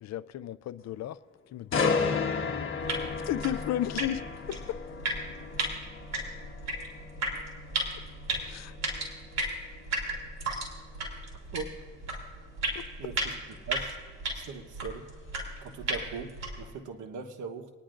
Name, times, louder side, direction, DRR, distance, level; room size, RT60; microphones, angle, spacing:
voice 1, 0.0-1.2 1.5-2.3 3.3-4.6 8.5-8.7, left 12 dB, 60° left, 16 dB, 0.5 m, -34 dB
sound 1, 1.7-15.6 16.0-16.2, left 5 dB, 40° left, 1.5 m, -35 dB
sound 2, 2.8-16.7, right 2 dB, 60° right, 3.6 m, -35 dB
voice 2, 13.0-13.9 14.3-15.1 15.6-17.7, right 5 dB, 80° right, 6 dB, 1.1 m, -40 dB
28.5 x 10.0 x 2.5 m, 1.5 s
cardioid pair, 90°, 30 cm